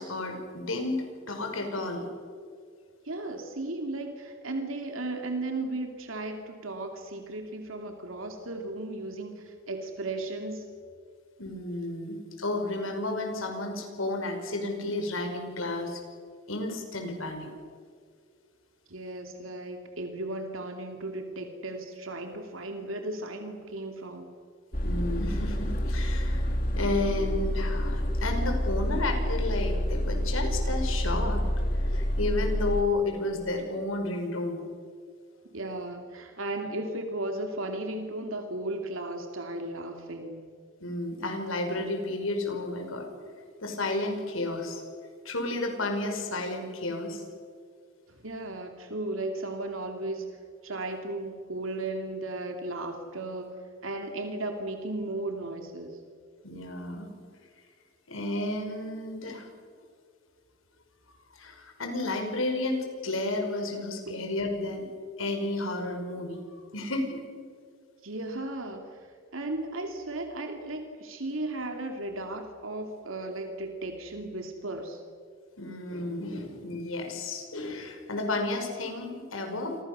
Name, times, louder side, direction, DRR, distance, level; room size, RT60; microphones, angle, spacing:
voice 1, 0.0-2.0 11.4-16.0 16.5-17.5 24.8-31.5 31.8-34.6 40.8-43.1 43.6-44.8 45.2-47.2 56.4-57.1 58.1-59.5 61.3-64.8 65.2-66.4 66.7-67.2 75.6-79.8, left 2 dB, 75° left, 4 dB, 5.5 m, -32 dB
voice 2, 3.0-10.7 18.9-24.3 35.5-40.4 48.1-50.4 50.6-56.0 64.1-64.2 68.0-69.1 69.3-75.0, right 2 dB, 75° right, 4 dB, 2.8 m, -35 dB
sound 1, 24.7-32.8, equal, 45° left, 2.6 m, -28 dB
28.5 x 24.0 x 6.9 m, 2.1 s
head